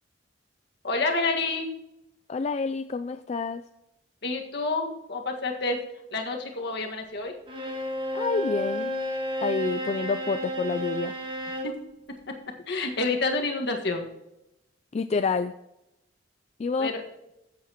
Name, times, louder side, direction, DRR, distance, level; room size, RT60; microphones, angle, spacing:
voice 1, 0.8-1.7 4.2-5.8 6.1-7.3 11.6-11.7 12.3-12.4 12.7-14.0 16.8-17.0, left 3 dB, 60° left, 3 dB, 1.7 m, -28 dB
voice 2, 2.3-3.6 8.1-8.9 9.4-11.1 14.9-15.5 16.6-16.9, left 4 dB, 35° left, 9 dB, 0.3 m, -28 dB
Bowed string instrument, 7.5-11.8, equal, 25° right, 1.8 m, -31 dB
14.5 x 7.7 x 2.9 m, 0.88 s
head